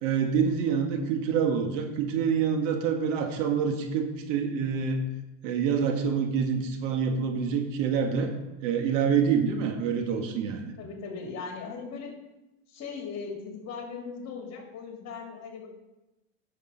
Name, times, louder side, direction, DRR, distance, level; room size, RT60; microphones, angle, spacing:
voice 1, 0.0-5.0 5.4-8.3 8.6-10.7, right 6 dB, 80° right, 4 dB, 1.8 m, -26 dB
voice 2, 10.8-12.1 12.7-15.7, left 5 dB, 45° left, 2 dB, 2.7 m, -38 dB
10.5 x 6.5 x 5.2 m, 0.98 s
supercardioid pair, 115°, 37 cm